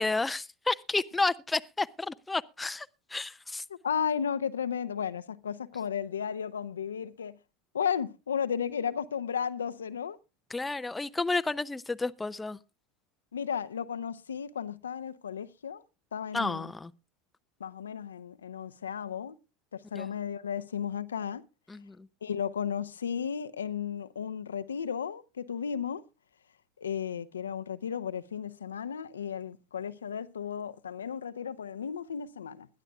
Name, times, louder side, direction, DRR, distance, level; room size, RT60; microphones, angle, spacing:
voice 1, 0.0-3.6 10.5-12.6 16.3-16.9 19.9-20.1 21.7-22.1, left 3 dB, 10° left, 0.6 m, -31 dB
voice 2, 3.7-7.4 7.7-10.2 13.3-15.8 16.1-16.7 17.6-19.4 19.7-21.4 22.2-26.0 26.8-32.7, left 7 dB, 80° left, 0.7 m, -34 dB
21.0 x 12.0 x 2.4 m
figure-of-eight pair, 80°, 0 cm